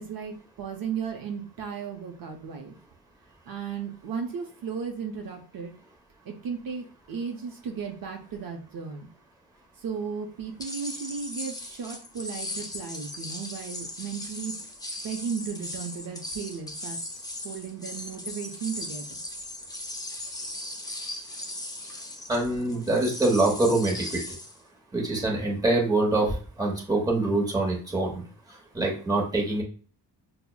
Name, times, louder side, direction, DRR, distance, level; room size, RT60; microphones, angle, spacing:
voice 1, 0.0-2.8 3.5-5.7 6.3-9.1 9.8-14.6 15.0-19.2, right 6 dB, 55° right, 2 dB, 0.6 m, -35 dB
sound 1, 10.6-24.6, left 1 dB, 10° left, 0.4 m, -38 dB
voice 2, 22.3-24.2 24.9-28.2 28.7-29.6, right 2 dB, 10° right, -2 dB, 0.8 m, -25 dB
5.6 x 2.0 x 2.2 m, 0.39 s
wide cardioid pair, 150°, 42 cm